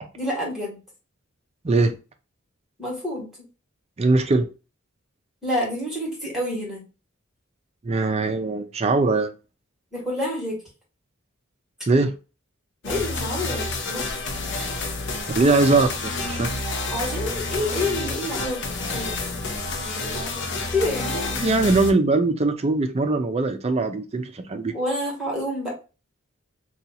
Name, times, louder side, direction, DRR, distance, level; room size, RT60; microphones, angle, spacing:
voice 1, 0.1-0.8 2.8-3.3 5.4-6.8 9.9-10.6 12.8-14.0 16.9-19.4 19.8-20.4 20.7-21.4 24.7-25.7, left 1 dB, ahead, 1.5 m, -28 dB
voice 2, 4.0-4.5 7.8-9.3 11.9-12.1 15.3-16.5 21.4-24.7, right 3 dB, 30° right, 0.5 m, -21 dB
sound 1, 12.8-21.9, left 3 dB, 60° left, 0.7 m, -29 dB
2.8 x 2.4 x 4.0 m
head